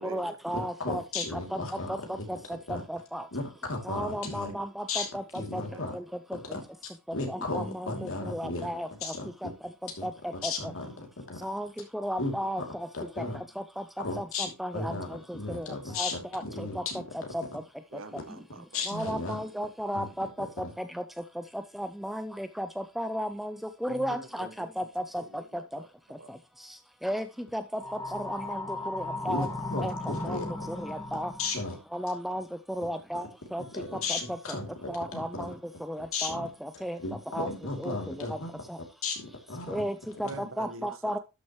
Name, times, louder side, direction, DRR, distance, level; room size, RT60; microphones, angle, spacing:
voice 1, 0.0-2.4 2.7-3.3 3.8-5.6 5.9-6.0 7.3-9.1 9.4-9.5 10.0-10.7 11.4-12.9 13.2-15.7 16.0-16.8 17.1-17.4 18.9-21.0 21.5-25.4 27.0-27.3 27.5-27.8 28.1-29.5 29.8-29.9 30.2-31.3 31.9-33.3 33.5-33.8 34.1-34.4 34.9-37.0 37.3-37.5 37.8-38.4 38.7-38.8 39.7-41.2, equal, ahead, 10 dB, 0.4 m, -34 dB
voice 2, 0.5-2.2 2.7-2.8 3.3-4.5 4.9-5.1 5.3-5.9 6.5-6.6 7.1-8.7 9.0-9.3 10.0-10.1 10.4-11.4 12.2-12.3 12.9-13.4 14.0-14.5 14.7-17.3 18.7-19.4 19.9-20.1 20.6-20.7 29.3-30.5 31.4-31.8 33.7-35.4 36.1-36.5 37.0-38.6 39.0-39.8, left 3 dB, 65° left, 3 dB, 2.7 m, -35 dB
voice 3, 5.7-6.0 17.9-19.0 23.9-24.7 25.1-25.9 26.2-26.3 40.2-40.9, right 2 dB, 60° right, 10 dB, 1.2 m, -45 dB
sound 1, 27.7-31.7, left 2 dB, 15° left, 1.7 m, -36 dB
12.0 x 6.3 x 3.0 m, 0.27 s
head